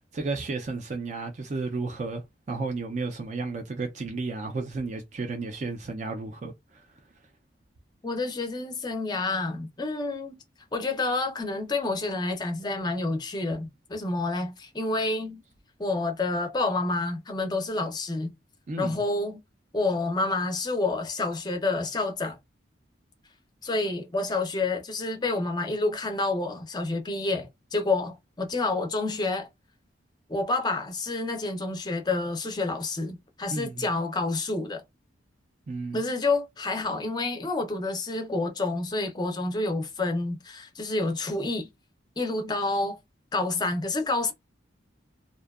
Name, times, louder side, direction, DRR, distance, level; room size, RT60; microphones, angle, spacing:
voice 1, 0.1-2.2 2.5-6.9 18.7-19.0 33.5-33.8 35.7-36.0, right 3 dB, 40° right, 0.3 m, -33 dB
voice 2, 8.0-10.4 10.7-15.4 15.8-18.3 18.8-19.4 19.7-22.4 23.6-29.5 30.3-34.8 35.9-41.7 42.2-43.0 43.3-44.3, left 2 dB, 20° left, 0.5 m, -28 dB
2.5 x 2.2 x 2.3 m
head